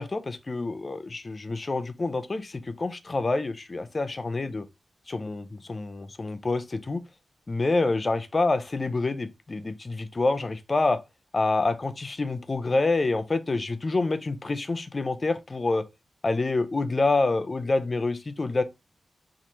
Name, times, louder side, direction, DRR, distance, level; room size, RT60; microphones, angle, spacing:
voice 1, 0.0-4.7 5.1-7.0 7.5-11.0 11.3-15.9 16.2-18.6, left 3 dB, 30° left, 0.4 m, -27 dB
4.4 x 2.4 x 2.9 m
wide cardioid pair, 170°, 0 cm